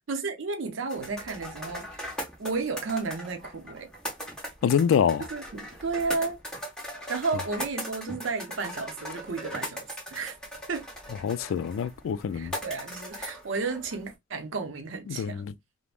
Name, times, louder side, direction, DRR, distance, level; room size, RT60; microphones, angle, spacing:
voice 1, 0.1-2.1 2.4-3.9 5.3-6.4 7.1-10.4 10.7-10.9 12.3-15.5, right 4 dB, 75° right, 0.6 m, -32 dB
sound 1, 0.9-14.1, equal, 5° left, 0.9 m, -39 dB
voice 2, 4.6-5.2 11.2-12.5 15.1-15.5, left 7 dB, 80° left, 0.3 m, -25 dB
3.3 x 2.1 x 2.3 m
head